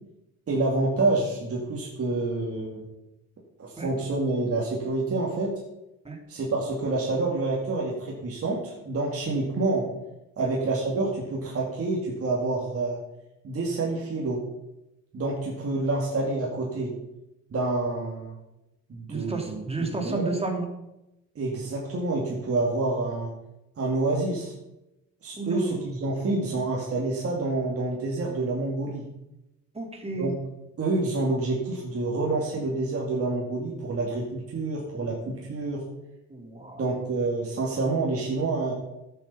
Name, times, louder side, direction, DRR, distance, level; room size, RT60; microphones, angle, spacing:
voice 1, 0.5-2.8 3.6-5.5 6.3-9.8 10.4-13.0 13.4-14.4 15.1-16.9 17.5-18.3 18.9-19.6 19.9-20.3 21.4-23.3 23.8-24.5 25.2-29.0 30.2-30.3 30.8-35.8 36.8-38.7, right 2 dB, 50° right, -3 dB, 2.6 m, -28 dB
voice 2, 19.1-20.7 25.4-25.8 29.7-30.3 36.3-36.8, right 3 dB, 20° right, 2 dB, 2.8 m, -32 dB
12.0 x 7.3 x 5.6 m, 0.92 s
cardioid pair, 90°, 30 cm